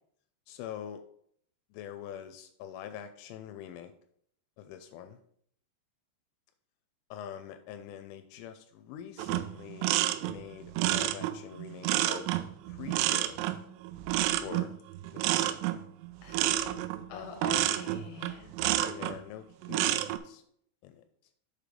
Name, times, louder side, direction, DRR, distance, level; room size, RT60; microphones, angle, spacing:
voice 1, 0.5-1.0 1.7-3.9 4.6-5.2 7.1-10.0 10.2-12.3 12.6-13.4 14.4-14.7 15.1-15.6 17.1-17.3 18.8-20.4 20.8-21.0, left 9 dB, 85° left, 8 dB, 3.0 m, -44 dB
sound 1, 9.2-19.2 19.6-20.2, right 13 dB, 85° right, 3.0 m, -29 dB
voice 2, 16.2-18.5, left 6 dB, 65° left, 3 dB, 2.6 m, -45 dB
7.1 x 5.0 x 5.1 m, 0.66 s
omnidirectional pair, 5.6 m